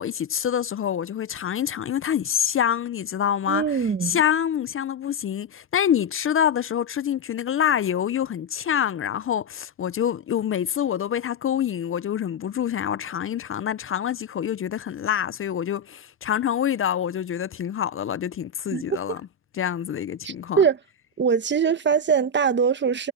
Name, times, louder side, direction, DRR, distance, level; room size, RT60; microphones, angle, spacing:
voice 1, 0.0-19.2 19.5-20.6, left 9 dB, 45° left, 0.6 m, -26 dB
voice 2, 3.5-4.2 18.7-18.8 20.2-20.8 21.2-23.1, right 6 dB, 35° right, 1.3 m, -22 dB
cardioid pair, 90°, 30 cm